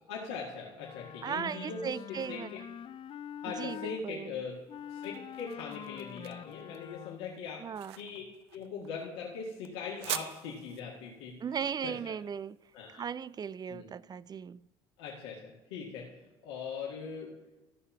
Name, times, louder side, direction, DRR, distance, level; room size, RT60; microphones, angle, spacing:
voice 1, 0.0-2.6 3.4-4.6 4.9-7.6 8.0-8.2 8.5-11.3 11.8-12.1 12.7-13.0 13.7-13.9 15.0-17.3, left 5 dB, 80° left, -4 dB, 1.9 m, -41 dB
Wind instrument woodwind instrument, 0.8-4.0 4.7-7.4, left 10 dB, 40° left, 0.4 m, -45 dB
voice 2, 1.2-2.5 3.5-4.4 7.6-8.0 11.4-12.6 12.9-14.7, right 7 dB, 30° right, 21 dB, 0.4 m, -37 dB
sound 1, 4.5-13.5, right 12 dB, 85° right, 0.5 m, -45 dB
13.5 x 5.6 x 5.7 m, 1.1 s
hypercardioid pair, 65°, 14 cm